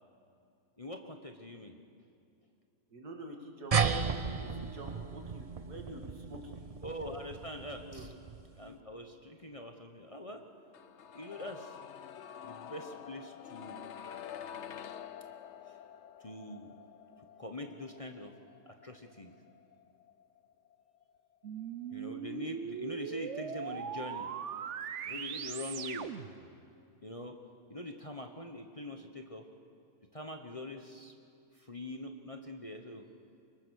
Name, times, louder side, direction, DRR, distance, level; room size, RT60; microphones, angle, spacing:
voice 1, 0.8-1.7 6.8-8.1 8.6-10.4 11.1-11.8 12.4-13.8 16.2-16.7 17.4-18.3 18.7-19.3 21.9-24.3 25.1-26.1 27.0-27.4 27.7-29.5 30.1-31.1 31.6-33.1, left 1 dB, 25° left, 4 dB, 1.1 m, -43 dB
voice 2, 2.9-6.6 7.8-8.1, right 1 dB, 80° right, 2 dB, 2.9 m, -47 dB
sound 1, 3.7-8.6, right 5 dB, 40° right, 0.5 m, -34 dB
sound 2, 10.7-22.6 22.8-22.9, left 9 dB, 55° left, 0.9 m, -49 dB
sound 3, 21.4-26.4, right 8 dB, 55° right, 1.0 m, -40 dB
24.0 x 22.5 x 6.5 m, 2.6 s
omnidirectional pair, 1.7 m